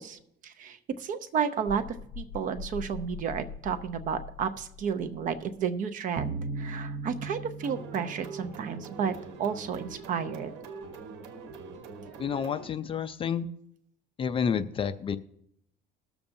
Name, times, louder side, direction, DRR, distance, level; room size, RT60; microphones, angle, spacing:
voice 1, 0.0-1.8 2.2-10.5, right 7 dB, 45° right, 10 dB, 0.7 m, -32 dB
sound 1, 1.7-5.7, left 5 dB, 55° left, 1.1 m, -43 dB
sound 2, 6.2-9.3, right 3 dB, 20° right, 0.9 m, -38 dB
sound 3, 7.6-12.7, right 4 dB, 85° right, 1.3 m, -44 dB
voice 2, 12.2-13.5 14.2-15.2, left 7 dB, 30° left, 12 dB, 0.4 m, -29 dB
20.5 x 7.0 x 2.7 m, 0.74 s
cardioid pair, 135°, 18 cm